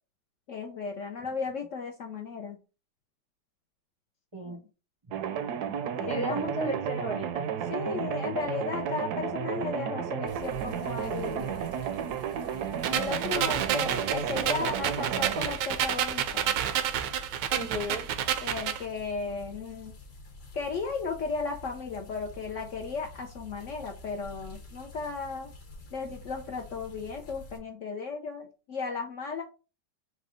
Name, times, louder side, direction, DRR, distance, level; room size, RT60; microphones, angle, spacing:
voice 1, 0.5-2.6 4.4-4.6 5.9-6.5 7.7-11.6 12.9-16.5 18.4-19.9 20.5-25.5 25.9-29.4, left 4 dB, 65° left, 2 dB, 0.8 m, -35 dB
sound 1, 5.1-15.5, right 8 dB, 75° right, 1.0 m, -33 dB
voice 2, 6.1-7.4 17.5-18.1, right 1 dB, 30° right, 0 dB, 0.5 m, -33 dB
sound 2, 10.3-27.6, left 2 dB, 40° left, 1.1 m, -48 dB
sound 3, 12.8-18.8, right 10 dB, 90° right, 1.3 m, -29 dB
4.8 x 2.2 x 4.8 m, 0.33 s
omnidirectional pair, 1.8 m